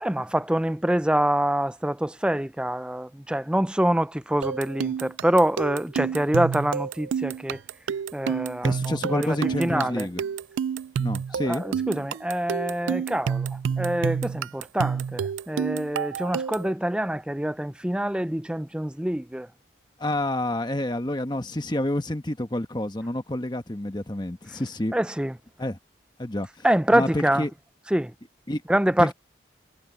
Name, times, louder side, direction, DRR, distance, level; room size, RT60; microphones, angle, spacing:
voice 1, 0.0-7.6 8.1-8.7 9.1-9.3 9.6-10.1 11.5-19.5 24.9-25.3 26.6-27.4 27.9-28.1 28.7-29.1, right 1 dB, 5° right, 0.4 m, -25 dB
sound 1, 4.4-16.7, right 7 dB, 80° right, 0.3 m, -29 dB
voice 2, 8.6-10.2 11.0-11.6 20.0-24.9 25.6-25.8 26.2-26.7 26.9-27.5 28.5-28.6 29.0-29.1, left 1 dB, 25° left, 1.2 m, -28 dB
head